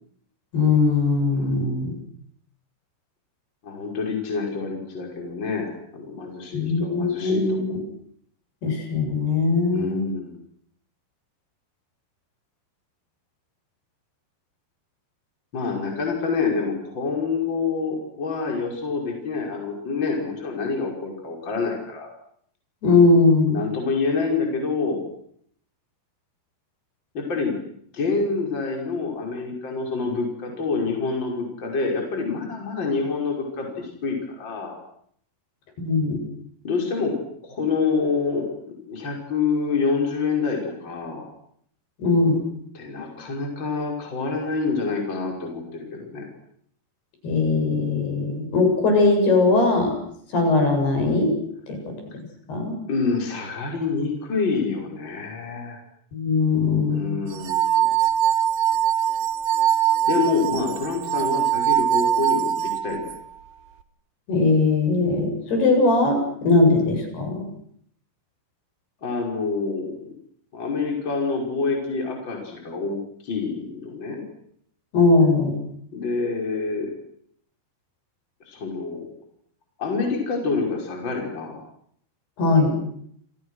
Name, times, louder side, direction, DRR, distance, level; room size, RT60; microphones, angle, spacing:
voice 1, 0.5-1.9 6.5-7.8 8.6-10.1 22.8-23.6 35.8-36.2 42.0-42.4 47.2-49.9 50.3-51.3 51.7-51.8 52.5-52.8 56.1-57.2 64.3-67.5 74.9-75.6 82.4-82.8, left 3 dB, 60° left, 4 dB, 9.6 m, -20 dB
voice 2, 3.6-7.7 9.7-10.4 15.5-22.1 23.5-25.0 27.1-27.6 27.9-34.8 36.6-37.2 37.4-41.3 42.7-46.3 52.9-55.8 56.9-57.9 60.0-63.0 69.0-70.0 70.5-74.2 75.9-76.9 78.5-79.1 79.8-81.6, left 4 dB, 25° left, 1 dB, 6.0 m, -27 dB
sound 1, 57.3-63.2, right 10 dB, 70° right, 3.5 m, -22 dB
29.5 x 29.0 x 6.5 m, 0.67 s
omnidirectional pair, 5.1 m